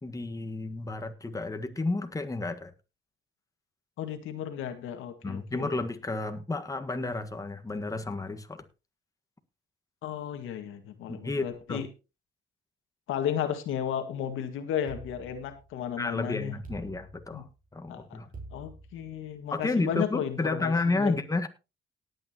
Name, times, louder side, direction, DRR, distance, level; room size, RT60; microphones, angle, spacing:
voice 1, 0.0-2.7 5.2-8.6 11.1-11.8 16.0-18.3 19.5-21.5, left 3 dB, 15° left, 7 dB, 1.5 m, -31 dB
voice 2, 4.0-5.8 10.0-11.9 13.1-16.5 17.3-17.4 17.9-18.2 18.5-21.2, left 9 dB, 90° left, 7 dB, 1.9 m, -34 dB
sound 1, 14.9-16.0 16.6-17.7 18.3-19.4, right 2 dB, 45° right, 4.7 m, -47 dB
18.5 x 8.9 x 2.9 m, 0.29 s
cardioid pair, 90°, 20 cm